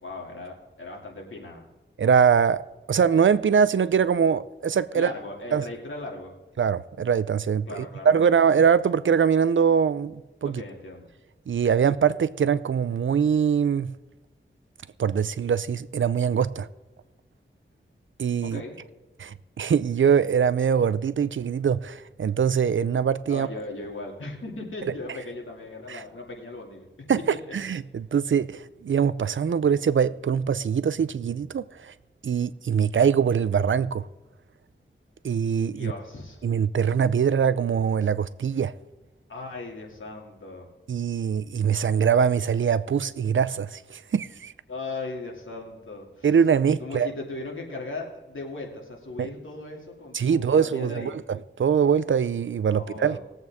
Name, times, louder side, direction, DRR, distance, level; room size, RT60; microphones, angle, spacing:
voice 1, 0.0-1.6 4.9-6.3 7.7-8.3 10.4-11.1 18.5-18.7 23.3-26.9 27.3-27.5 35.7-36.5 39.3-40.7 44.7-46.3 46.8-51.1 52.6-53.2, left 2 dB, 80° left, 2.6 m, -37 dB
voice 2, 2.0-2.6 2.9-5.1 5.5-5.7 6.6-10.6 11.5-13.9 15.0-16.7 18.2-18.6 19.2-23.5 24.8-24.9 25.9-26.0 27.1-31.9 32.2-34.1 35.2-35.9 36.4-38.7 40.9-44.5 46.2-47.1 49.2-49.3 50.1-53.2, right 7 dB, 75° right, 0.5 m, -23 dB
19.5 x 7.8 x 3.5 m
wide cardioid pair, 75°, 20 cm